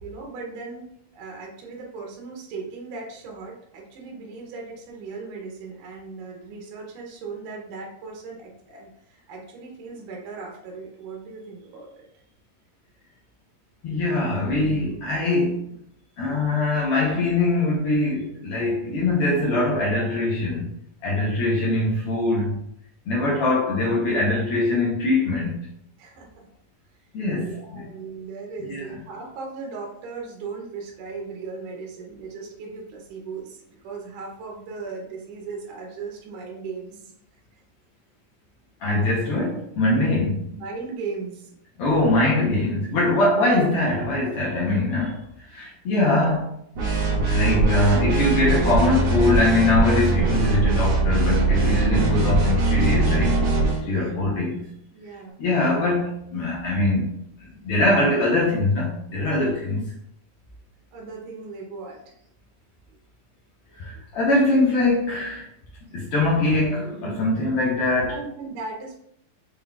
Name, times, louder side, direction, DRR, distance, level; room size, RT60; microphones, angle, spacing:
voice 1, 0.0-0.9 1.1-12.1 26.0-26.5 27.4-37.1 40.5-41.5 41.9-42.0 43.1-43.3 53.8-54.2 54.9-55.4 60.9-62.1 68.1-69.0, right 4 dB, 80° right, 2.4 m, -37 dB
voice 2, 13.8-15.6 16.2-20.7 21.0-22.6 23.1-25.6 27.1-27.8 28.6-28.8 38.8-40.4 41.8-45.2 45.5-46.6 47.3-53.4 53.8-54.6 55.4-57.1 57.6-59.9 63.8-65.4 65.9-68.2, left 2 dB, 80° left, 1.3 m, -22 dB
sound 1, 46.8-53.8, right 3 dB, 55° right, 1.8 m, -21 dB
6.0 x 3.7 x 2.3 m
omnidirectional pair, 3.9 m